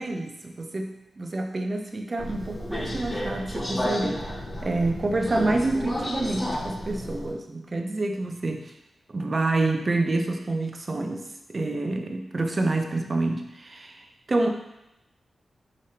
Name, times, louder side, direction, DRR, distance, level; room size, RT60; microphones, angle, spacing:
voice 1, 0.0-4.3 4.6-8.7 9.1-14.0 14.3-14.5, right 2 dB, 40° right, 4 dB, 0.5 m, -27 dB
Subway metro underground, 2.2-7.3, equal, 25° left, 0.8 m, -32 dB
5.0 x 3.4 x 2.8 m, 0.91 s
wide cardioid pair, 90°, 0 cm